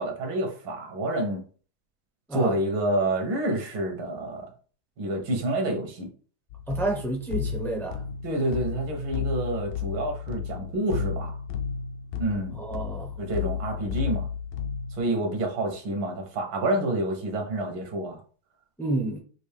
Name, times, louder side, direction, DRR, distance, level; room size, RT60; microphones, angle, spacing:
voice 1, 0.0-1.4 2.3-4.5 5.0-6.1 8.2-11.4 12.2-12.6 13.2-14.3 15.0-18.2, right 1 dB, 70° right, 1.8 m, -28 dB
sound 1, 6.5-15.0, left 7 dB, 70° left, 1.2 m, -33 dB
voice 2, 6.7-8.0 12.5-13.1 18.8-19.2, right 2 dB, 5° left, 0.3 m, -29 dB
6.0 x 2.5 x 3.3 m
omnidirectional pair, 2.2 m